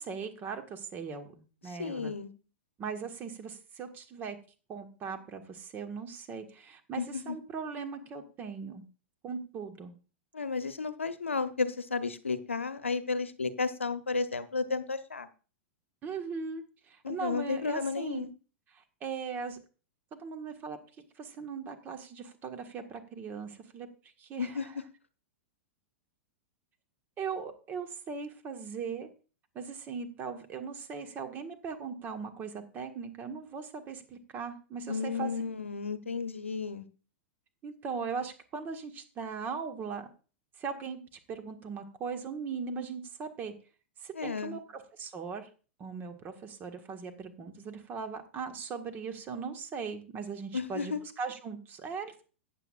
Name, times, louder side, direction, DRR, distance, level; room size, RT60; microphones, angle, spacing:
voice 1, 0.0-2.1 2.8-4.4 4.7-8.8 9.2-9.9 16.0-18.3 18.7-19.6 20.1-20.8 21.2-23.9 24.2-24.7 27.2-29.1 29.5-35.4 37.6-40.1 40.6-41.0 41.3-43.5 44.0-45.5 45.8-52.2, right 5 dB, 30° right, 6 dB, 1.5 m, -39 dB
voice 2, 1.7-2.3 7.0-7.4 10.3-15.3 17.0-18.3 24.4-24.7 34.9-36.9 44.1-44.6 50.5-51.0, left 4 dB, 85° left, 12 dB, 0.8 m, -33 dB
14.5 x 9.1 x 2.5 m, 0.36 s
figure-of-eight pair, 100°, 7 cm